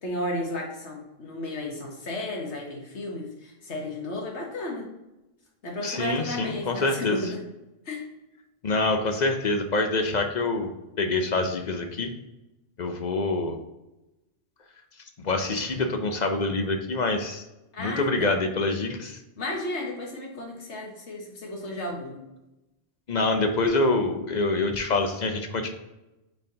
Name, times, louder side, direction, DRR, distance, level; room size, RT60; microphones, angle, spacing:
voice 1, 0.0-4.9 5.6-7.4 7.8-8.0 17.7-18.4 19.4-22.2, left 1 dB, 70° left, 0 dB, 1.7 m, -33 dB
voice 2, 5.8-7.2 8.6-10.7 11.0-12.1 12.8-13.6 15.2-17.4 17.8-19.2 23.1-25.7, left 2 dB, 45° left, 5 dB, 0.7 m, -26 dB
8.8 x 4.1 x 2.8 m, 0.96 s
omnidirectional pair, 1.2 m